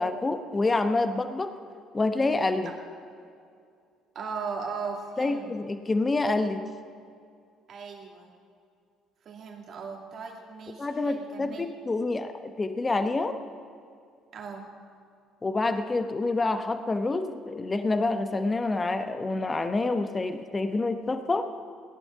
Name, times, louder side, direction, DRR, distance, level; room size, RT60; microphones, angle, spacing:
voice 1, 0.0-1.5 1.9-2.7 5.2-6.6 10.8-13.4 15.4-21.5, left 3 dB, 25° left, 9 dB, 1.0 m, -27 dB
voice 2, 4.1-5.6 7.7-8.3 9.2-11.7 14.3-14.7, right 5 dB, 50° right, 1 dB, 2.5 m, -38 dB
18.0 x 11.0 x 5.8 m, 2.4 s
hypercardioid pair, 55°, 0 cm